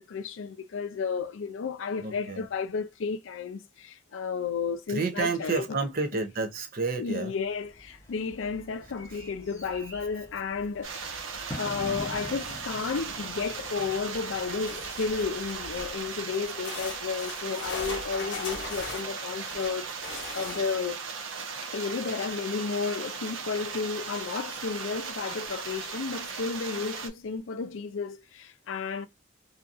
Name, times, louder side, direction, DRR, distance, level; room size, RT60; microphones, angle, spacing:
voice 1, 0.0-5.7 7.0-11.2 11.6-21.0 21.6-29.1, left 5 dB, 85° left, 0.4 m, -32 dB
voice 2, 2.0-2.4 4.9-7.3, right 4 dB, 45° right, 0.6 m, -30 dB
Bird / Fireworks, 7.5-16.7, equal, 15° left, 0.7 m, -46 dB
sound 1, 10.8-27.1, right 5 dB, 90° right, 0.6 m, -37 dB
sound 2, 14.7-16.1 16.6-20.9 24.2-24.3 24.6-24.7 25.5-25.6, left 4 dB, 55° left, 0.9 m, -40 dB
2.7 x 2.6 x 2.4 m
head